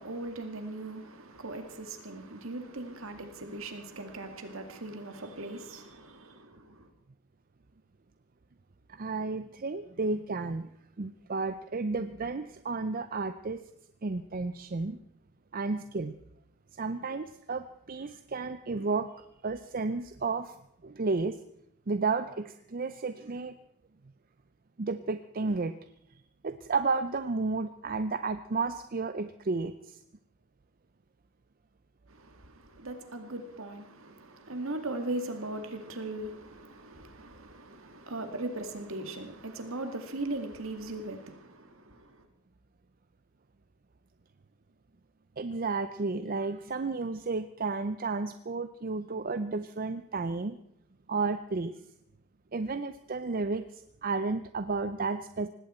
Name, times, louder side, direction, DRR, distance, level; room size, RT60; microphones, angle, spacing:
voice 1, 0.0-6.9 32.1-42.3, right 2 dB, 65° right, 2.1 m, -39 dB
voice 2, 8.9-10.7 11.0-13.6 14.0-15.0 15.5-16.2 16.7-20.6 20.8-21.4 21.9-23.6 24.8-25.8 26.4-30.0 45.4-50.6 51.1-51.7 52.5-55.5, right 3 dB, 40° right, 0.5 m, -32 dB
19.0 x 16.5 x 4.4 m
head